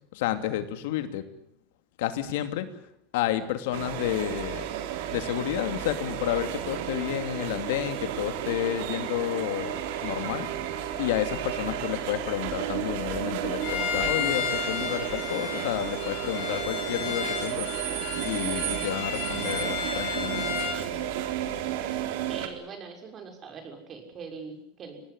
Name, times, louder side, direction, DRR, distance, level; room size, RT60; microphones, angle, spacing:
voice 1, 0.1-1.3 2.0-2.7 3.1-4.7 5.1-10.5 11.0-17.7 18.2-20.5, left 12 dB, 75° left, 9 dB, 2.8 m, -30 dB
sound 1, 3.7-22.5, right 10 dB, 70° right, 3.9 m, -32 dB
Bowed string instrument, 13.6-20.8, left 8 dB, 60° left, 5.3 m, -33 dB
voice 2, 22.3-25.0, right 5 dB, 30° right, 5 dB, 6.2 m, -42 dB
25.0 x 19.0 x 9.9 m, 0.73 s
supercardioid pair, 140°, 0 cm